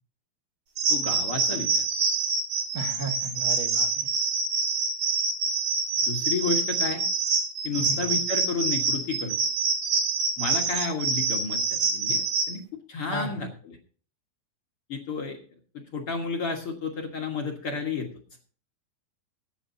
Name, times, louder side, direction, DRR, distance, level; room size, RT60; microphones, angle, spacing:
sound 1, 0.8-12.5, right 4 dB, 75° right, 5.6 m, -26 dB
voice 1, 0.9-1.8 6.0-7.0 7.6-9.4 10.4-12.6 12.9-13.8 14.9-15.4 15.7-18.1, left 4 dB, 50° left, 1 dB, 1.9 m, -31 dB
voice 2, 2.7-3.9 7.8-8.0 13.1-13.4, right 1 dB, 40° right, 2 dB, 1.3 m, -34 dB
24.0 x 8.7 x 2.8 m, 0.42 s
omnidirectional pair, 4.2 m